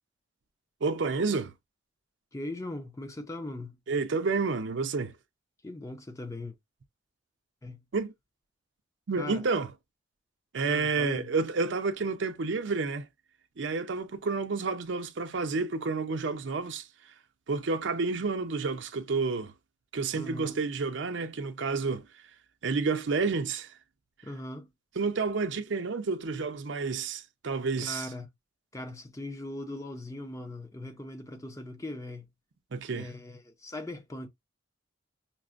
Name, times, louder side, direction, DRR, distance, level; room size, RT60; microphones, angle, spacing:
voice 1, 0.8-1.5 3.9-5.1 7.9-8.1 9.1-9.7 10.5-13.1 13.6-16.9 17.5-19.5 19.9-22.0 22.6-23.7 25.0-28.1 32.7-33.1, right 4 dB, 65° right, 0.5 m, -30 dB
voice 2, 2.3-3.8 5.6-6.5 7.6-7.8 9.2-9.5 10.7-11.3 20.1-20.6 24.2-24.7 27.8-28.3 28.7-32.3 32.9-34.3, left 1 dB, 15° left, 0.5 m, -39 dB
5.8 x 2.1 x 2.4 m
head